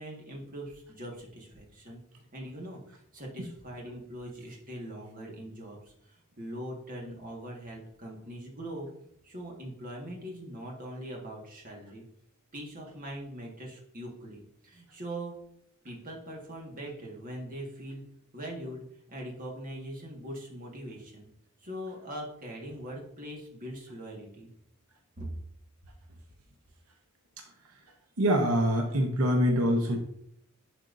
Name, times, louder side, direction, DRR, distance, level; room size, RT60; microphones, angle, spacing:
voice 1, 0.0-2.0 2.3-8.9 9.2-12.0 12.5-15.3 15.8-18.0 18.3-21.3 21.6-24.5 25.2-25.3, right 1 dB, 40° right, -1 dB, 1.6 m, -41 dB
voice 2, 28.2-30.0, equal, 80° right, 2 dB, 0.9 m, -24 dB
10.5 x 4.5 x 2.6 m, 0.71 s
head